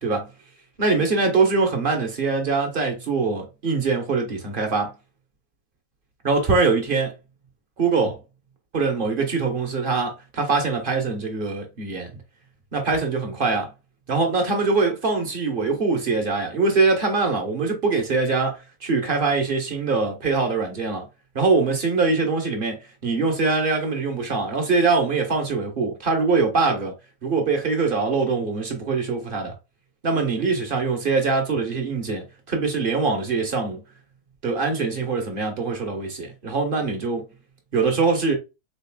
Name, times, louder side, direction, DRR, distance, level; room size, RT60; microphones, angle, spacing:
voice 1, 0.8-4.9 6.2-7.1 7.8-8.2 8.7-12.2 12.7-13.7 14.1-21.1 21.3-26.9 27.2-29.5 30.0-33.8 34.4-37.3 37.7-38.4, right 4 dB, 40° right, 1.0 m, -23 dB
3.9 x 3.2 x 2.2 m
omnidirectional pair, 1.6 m